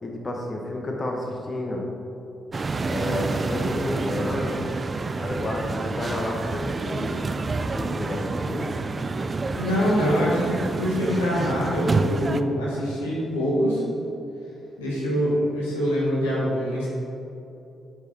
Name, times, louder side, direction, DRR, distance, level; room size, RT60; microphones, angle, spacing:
voice 1, 0.0-1.9 2.9-4.7 5.2-7.2 7.7-8.7, left 1 dB, 35° left, 0 dB, 1.3 m, -30 dB
sound 1, 2.5-12.4, right 3 dB, 40° right, 0.4 m, -28 dB
voice 2, 9.6-13.8 14.8-16.9, equal, 90° left, -6 dB, 1.5 m, -24 dB
8.2 x 5.3 x 4.3 m, 2.8 s
hypercardioid pair, 40°, 0 cm